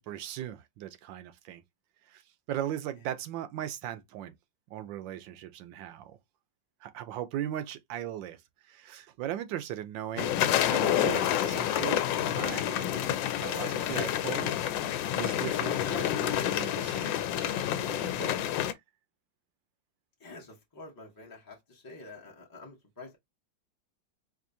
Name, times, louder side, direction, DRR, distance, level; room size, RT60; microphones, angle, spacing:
voice 1, 0.0-1.6 2.1-2.2 2.5-4.3 4.7-6.2 6.8-8.4 8.6-10.3 10.7-14.6 15.2-18.4, right 11 dB, 80° right, 1.3 m, -38 dB
sound 1, 10.2-18.7, left 11 dB, 85° left, 1.3 m, -29 dB
voice 2, 20.2-23.2, left 2 dB, 20° left, 0.6 m, -48 dB
4.4 x 2.6 x 2.6 m
omnidirectional pair, 2.0 m